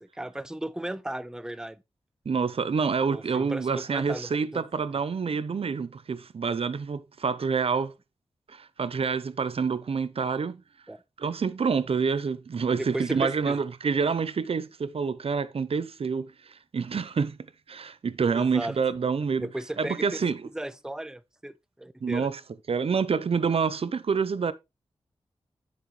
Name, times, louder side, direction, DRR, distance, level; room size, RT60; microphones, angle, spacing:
voice 1, 0.0-1.8 3.1-4.6 10.9-11.0 12.7-13.6 18.3-18.8 19.4-20.1 20.5-22.3, right 1 dB, 5° right, 0.6 m, -35 dB
voice 2, 2.3-7.9 8.5-10.6 11.2-17.4 17.7-19.5 19.8-20.5 22.0-22.4 22.7-24.5, right 5 dB, 65° right, 0.7 m, -27 dB
10.0 x 6.1 x 3.2 m
cardioid pair, 50°, 11 cm